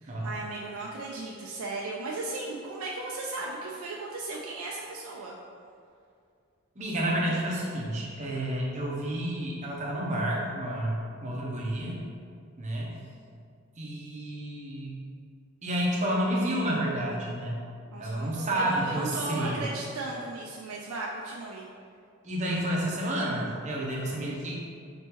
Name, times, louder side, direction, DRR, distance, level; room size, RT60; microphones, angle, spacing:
voice 1, 0.0-5.4 17.9-21.7, right 2 dB, 90° right, -3 dB, 0.4 m, -36 dB
voice 2, 6.8-12.0 12.6-12.9 13.8-15.0 15.6-17.6 18.0-19.6 22.2-24.5, right 1 dB, 35° right, -4 dB, 0.7 m, -30 dB
4.0 x 3.6 x 2.9 m, 2.3 s
head